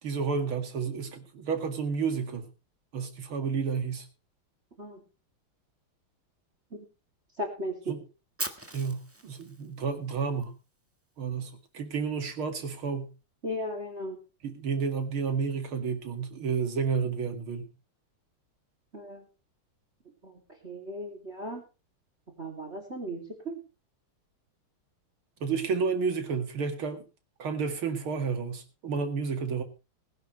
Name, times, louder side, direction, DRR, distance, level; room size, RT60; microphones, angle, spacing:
voice 1, 0.0-2.5 2.9-4.1 7.9-8.1 8.7-10.5 11.2-13.1 14.4-17.7 25.4-27.0 27.4-29.6, right 5 dB, 75° right, 6 dB, 2.9 m, -31 dB
voice 2, 7.4-8.0 13.4-14.2 18.9-19.2 20.2-20.3 20.6-21.6 22.4-23.6, equal, 30° right, 4 dB, 2.9 m, -36 dB
Fire, 8.4-10.4, right 1 dB, 10° right, 1.1 m, -39 dB
20.0 x 11.0 x 3.2 m, 0.31 s
omnidirectional pair, 2.4 m